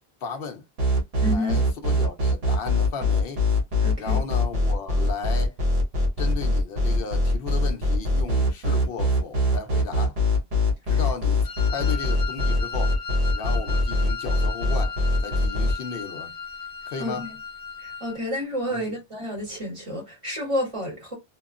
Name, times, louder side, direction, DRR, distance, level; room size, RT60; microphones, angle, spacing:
voice 1, 0.2-0.6 1.3-3.5 4.0-5.6 6.2-10.2 10.9-13.0 13.3-16.3 16.9-17.3 18.7-19.0, left 5 dB, 70° left, 0.9 m, -35 dB
sound 1, 0.8-15.7, left 1 dB, 70° right, 1.2 m, -22 dB
voice 2, 1.2-1.6 3.8-4.2 10.9-11.0 17.0-17.3 17.8-21.1, left 1 dB, 30° right, 1.6 m, -30 dB
Wind instrument woodwind instrument, 11.4-18.2, left 6 dB, 50° left, 0.5 m, -36 dB
2.9 x 2.4 x 2.4 m
omnidirectional pair, 1.0 m